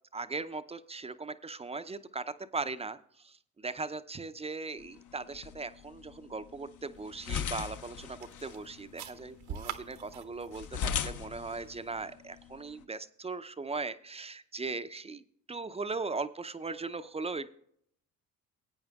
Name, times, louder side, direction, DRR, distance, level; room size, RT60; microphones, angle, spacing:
voice 1, 0.1-15.2 15.5-17.5, right 3 dB, 15° right, 11 dB, 0.5 m, -39 dB
sound 1, 4.8-12.8, left 8 dB, 50° left, 0.7 m, -40 dB
sound 2, 6.9-12.1, right 9 dB, 70° right, 1.0 m, -47 dB
17.5 x 8.7 x 2.3 m, 0.66 s
hypercardioid pair, 65°, 40 cm